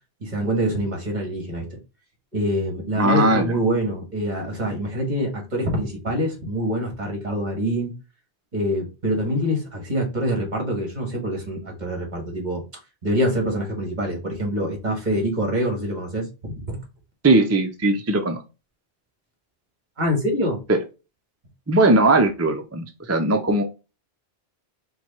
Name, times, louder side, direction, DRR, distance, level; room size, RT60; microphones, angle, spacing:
voice 1, 0.2-1.8 2.3-7.9 8.5-12.6 13.0-16.8 20.0-20.6, equal, 40° right, 1.7 m, -25 dB
voice 2, 3.0-3.5 17.2-18.4 20.7-20.8 21.7-23.6, right 2 dB, 25° right, 0.3 m, -19 dB
4.6 x 2.3 x 4.2 m
omnidirectional pair, 1.1 m